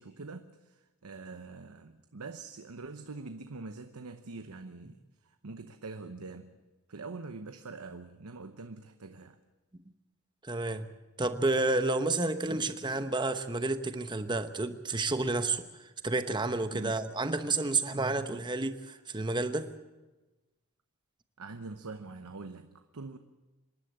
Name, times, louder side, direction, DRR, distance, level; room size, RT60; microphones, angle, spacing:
voice 1, 0.0-6.5 6.9-9.4 16.7-17.0 21.4-23.2, right 3 dB, 85° right, 8 dB, 0.9 m, -44 dB
voice 2, 10.4-10.9 11.2-19.7, right 2 dB, 20° right, 9 dB, 0.9 m, -30 dB
26.0 x 11.5 x 8.7 m, 1.1 s
head